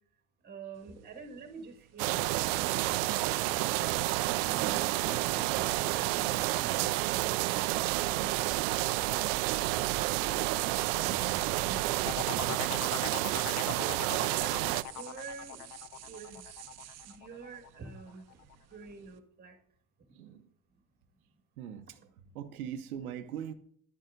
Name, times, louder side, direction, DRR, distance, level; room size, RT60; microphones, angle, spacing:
voice 1, 0.4-5.1 5.8-8.4 9.0-11.4 11.8-12.1 12.4-12.6 13.5-15.6 16.0-16.5 17.2-18.2 18.7-19.5, right 4 dB, 20° right, 1.8 m, -47 dB
sound 1, 0.7-19.2, right 9 dB, 40° right, 0.9 m, -48 dB
sound 2, 2.0-14.8, right 18 dB, 65° right, 0.5 m, -30 dB
sound 3, 12.1-17.7 18.1-18.5, left 13 dB, 85° left, 0.6 m, -40 dB
voice 2, 20.1-20.5 21.6-23.5, right 9 dB, 85° right, 0.8 m, -42 dB
10.5 x 9.1 x 2.6 m
hypercardioid pair, 90°, 43 cm